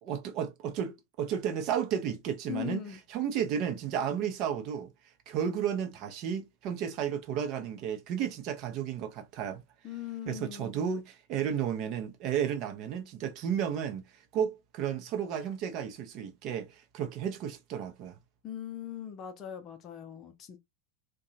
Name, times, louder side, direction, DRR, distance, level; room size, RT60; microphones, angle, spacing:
voice 1, 0.0-2.8 3.1-4.9 5.3-9.6 10.3-14.0 14.3-18.2, right 8 dB, 40° right, 0.6 m, -33 dB
voice 2, 2.5-3.0 9.8-10.9 18.4-20.6, left 11 dB, 30° left, 0.6 m, -40 dB
2.7 x 2.2 x 2.6 m
figure-of-eight pair, 90°, 0 cm